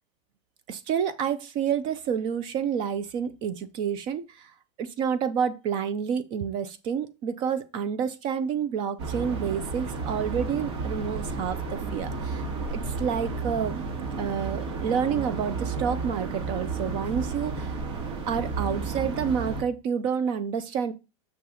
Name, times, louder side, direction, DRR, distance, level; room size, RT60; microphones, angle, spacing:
voice 1, 0.7-4.5 4.8-12.4 12.7-13.9 14.2-17.8 18.3-20.9, right 7 dB, 30° right, 13 dB, 0.5 m, -29 dB
sound 1, 9.0-19.6, right 4 dB, 65° right, 2.0 m, -32 dB
6.4 x 3.8 x 4.3 m, 0.27 s
supercardioid pair, 175°, 16 cm